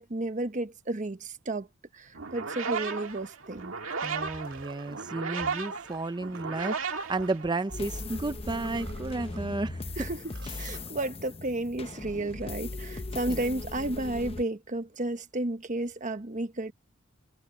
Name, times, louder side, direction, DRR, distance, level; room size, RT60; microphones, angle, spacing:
voice 1, 0.0-1.7 1.9-3.7 10.0-16.7, right 2 dB, 40° right, 1.1 m, -32 dB
sound 1, 2.1-8.0, right 5 dB, 85° right, 1.9 m, -35 dB
sound 2, 3.2-5.1 5.7-9.4 9.8-9.9 10.1-10.9 12.4-12.5, right 4 dB, 65° right, 4.6 m, -52 dB
voice 2, 4.0-10.1 10.6-10.7 13.3-13.4, right 2 dB, 20° right, 0.5 m, -33 dB
sound 3, 7.7-14.4, left 2 dB, 30° left, 0.7 m, -39 dB
head